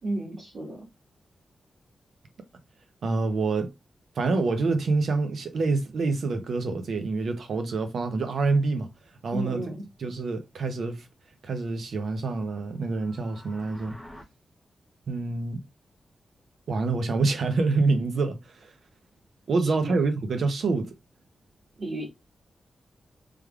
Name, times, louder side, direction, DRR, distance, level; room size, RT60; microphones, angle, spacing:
voice 1, 0.0-0.8 9.3-9.8 19.6-19.9 21.8-22.0, right 1 dB, 55° right, 1.5 m, -32 dB
voice 2, 3.0-3.7 4.2-8.9 9.2-9.6 10.0-11.0 11.4-14.0 15.1-15.6 16.7-18.7 19.5-20.9, right 3 dB, 70° right, 0.7 m, -26 dB
sound 1, 12.8-14.2, left 1 dB, ahead, 0.6 m, -47 dB
3.3 x 3.3 x 2.3 m
wide cardioid pair, 150°, 0 cm